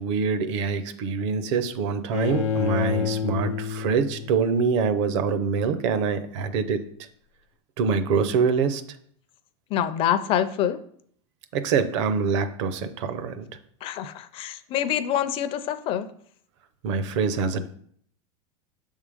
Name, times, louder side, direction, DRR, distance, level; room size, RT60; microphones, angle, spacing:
voice 1, 0.0-6.8 7.8-8.8 11.5-13.5 16.8-17.7, right 5 dB, 65° right, 11 dB, 0.7 m, -25 dB
Bowed string instrument, 2.1-5.2, left 7 dB, 80° left, 0.8 m, -29 dB
voice 2, 9.7-10.8 13.8-16.1, left 10 dB, 35° left, 11 dB, 0.4 m, -26 dB
6.7 x 3.7 x 5.0 m, 0.63 s
supercardioid pair, 145°, 17 cm